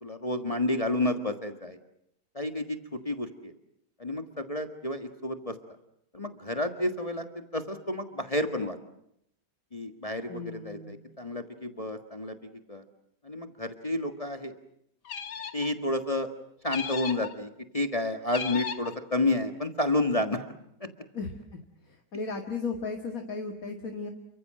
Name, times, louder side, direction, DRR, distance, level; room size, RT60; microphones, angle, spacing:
voice 1, 0.0-1.8 2.3-2.8 3.0-3.5 4.0-5.5 6.1-8.8 9.7-12.3 12.7-12.8 13.2-14.5 15.5-16.3 16.6-20.5 20.8-20.9, left 1 dB, 20° left, 7 dB, 1.6 m, -30 dB
voice 2, 10.3-11.0 21.1-21.6 21.9-24.1, left 4 dB, 55° left, 4 dB, 2.4 m, -36 dB
sound 1, 15.0-15.7 16.7-17.3 18.3-19.0, left 7 dB, 80° left, 2.1 m, -36 dB
29.5 x 24.5 x 7.7 m, 0.75 s
omnidirectional pair, 1.8 m